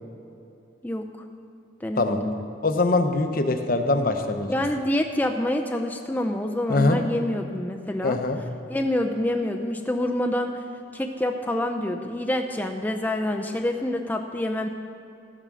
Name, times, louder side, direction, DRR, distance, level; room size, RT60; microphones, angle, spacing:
voice 1, 1.8-2.4 4.5-8.2 8.7-10.6 10.9-14.7, left 1 dB, 10° left, 3 dB, 0.5 m, -27 dB
voice 2, 2.6-4.5 6.7-7.0 8.0-8.4, left 2 dB, 50° left, 7 dB, 0.8 m, -22 dB
13.5 x 8.8 x 6.2 m, 2.6 s
head